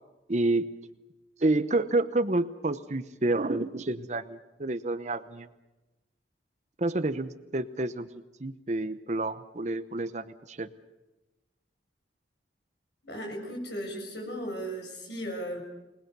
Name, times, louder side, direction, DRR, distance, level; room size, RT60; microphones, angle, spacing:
voice 1, 0.3-0.7 1.4-5.5 6.8-10.7, right 2 dB, 40° right, 11 dB, 0.9 m, -29 dB
voice 2, 13.0-15.6, equal, 75° left, 1 dB, 7.3 m, -36 dB
28.5 x 19.5 x 6.9 m, 1.1 s
head